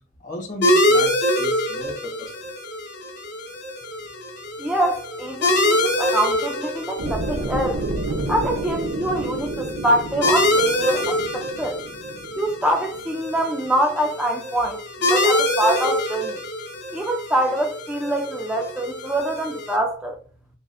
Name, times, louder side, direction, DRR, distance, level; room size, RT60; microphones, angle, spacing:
voice 1, 0.2-2.5, left 2 dB, 45° left, 1.3 m, -34 dB
sound 1, 0.6-19.8, left 1 dB, 60° left, 1.0 m, -25 dB
voice 2, 4.6-7.9 8.3-11.8 12.4-14.8 15.1-16.4 16.9-20.2, right 1 dB, 5° right, 0.3 m, -24 dB
sound 2, 7.0-13.1, right 2 dB, 85° right, 0.7 m, -30 dB
6.1 x 2.1 x 2.5 m
head